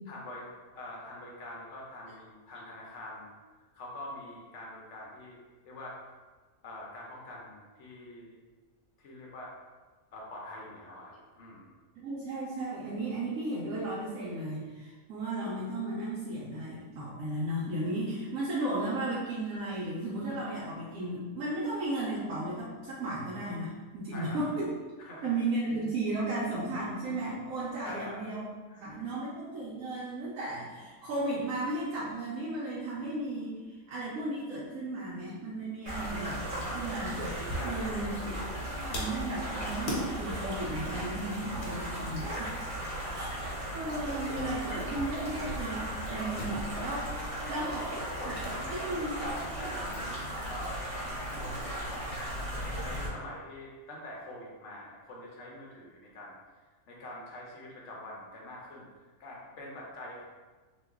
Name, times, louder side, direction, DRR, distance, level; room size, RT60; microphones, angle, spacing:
voice 1, 0.1-0.5 0.7-3.3 3.7-5.4 5.6-6.0 6.6-8.4 9.0-9.5 10.1-11.7 24.1-24.4 25.0-25.4 27.8-28.2 28.7-29.1 37.5-38.0 41.7-42.0 43.0-43.2 46.3-46.5 47.0-56.4 56.9-58.9 59.2-60.2, left 1 dB, 65° left, -3 dB, 0.8 m, -45 dB
voice 2, 12.0-24.7 25.2-28.4 28.8-38.2 38.4-38.6 38.9-42.3 43.1-43.3 43.7-47.0 47.5-47.8 48.3-48.4 48.7-49.1, right 2 dB, 80° right, -7 dB, 1.0 m, -35 dB
sound 1, 35.9-53.1, right 1 dB, 35° right, 0.6 m, -37 dB
sound 2, 37.1-48.5 48.8-48.9 50.1-50.8, equal, 85° left, 1.2 m, -43 dB
3.0 x 2.1 x 3.4 m, 1.3 s
omnidirectional pair, 1.5 m